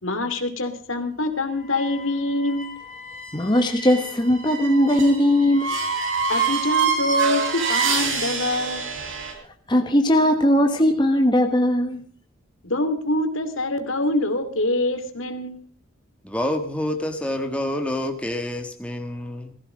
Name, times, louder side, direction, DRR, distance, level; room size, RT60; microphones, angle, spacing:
voice 1, 0.0-2.7 6.3-8.8 12.6-15.6, left 2 dB, 70° left, 8 dB, 2.6 m, -25 dB
sound 1, 1.6-9.3, right 5 dB, 65° right, 5.2 m, -27 dB
voice 2, 3.3-5.8 9.7-12.0, left 1 dB, 20° left, 5 dB, 1.2 m, -19 dB
voice 3, 16.2-19.6, left 1 dB, 5° left, 5 dB, 1.4 m, -27 dB
18.5 x 15.0 x 5.0 m, 0.42 s
head